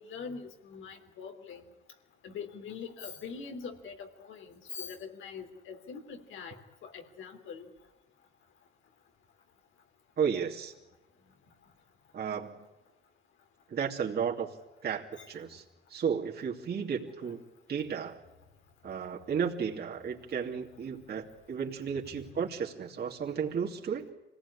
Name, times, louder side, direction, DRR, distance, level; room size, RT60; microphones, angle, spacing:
voice 1, 0.0-1.6 2.2-6.5 6.8-7.7 15.2-15.3 17.2-17.3 22.2-22.3, left 6 dB, 80° left, 5 dB, 3.4 m, -43 dB
voice 2, 10.2-10.7 12.1-12.7 13.7-14.5 14.8-15.6 15.9-17.4 17.7-18.2 18.8-24.1, right 7 dB, 55° right, -2 dB, 2.9 m, -33 dB
26.0 x 18.0 x 9.9 m, 1.0 s
cardioid pair, 90°, 20 cm